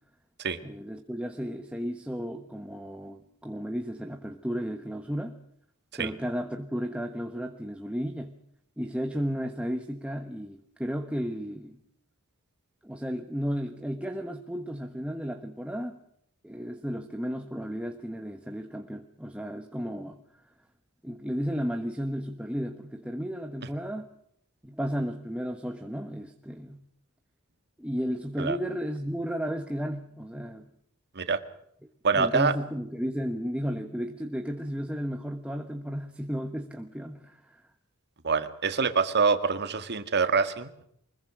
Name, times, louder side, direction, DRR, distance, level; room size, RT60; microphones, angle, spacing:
voice 1, 0.6-5.4 5.9-8.3 8.8-11.8 12.8-16.0 16.4-20.2 21.0-24.1 24.6-26.8 27.8-30.7 32.1-37.6, equal, 5° right, 5 dB, 1.3 m, -33 dB
voice 2, 32.0-32.5 38.2-40.8, right 5 dB, 50° right, 10 dB, 1.9 m, -25 dB
24.5 x 22.0 x 6.2 m, 0.70 s
head